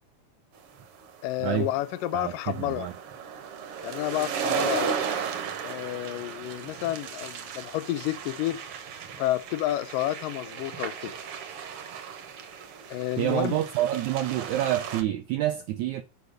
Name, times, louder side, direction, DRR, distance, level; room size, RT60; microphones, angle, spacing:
sound 1, 0.8-15.0, right 7 dB, 65° right, 1.4 m, -35 dB
voice 1, 1.2-2.9 3.8-5.0 5.6-8.6 9.2-11.1 12.9-13.6, left 15 dB, 80° left, 2.1 m, -30 dB
voice 2, 2.1-2.9 13.2-16.0, right 13 dB, 85° right, 1.6 m, -28 dB
6.5 x 5.5 x 6.5 m
omnidirectional pair, 3.9 m